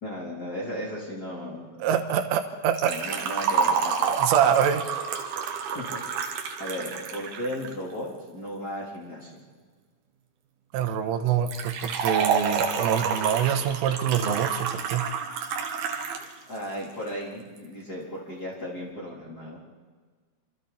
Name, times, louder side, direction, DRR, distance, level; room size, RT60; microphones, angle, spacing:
voice 1, 0.0-1.8 2.8-4.6 5.7-5.9 6.6-9.4 16.5-19.6, equal, 20° left, -4 dB, 3.7 m, -35 dB
voice 2, 1.8-3.0 4.2-4.8 10.7-15.1, right 9 dB, 90° right, 8 dB, 3.7 m, -25 dB
Liquid, 2.7-7.7 11.5-16.3 16.6-16.7 17.6-17.7, right 6 dB, 60° right, 3.1 m, -28 dB
27.0 x 26.0 x 4.3 m, 1.5 s
omnidirectional pair, 5.6 m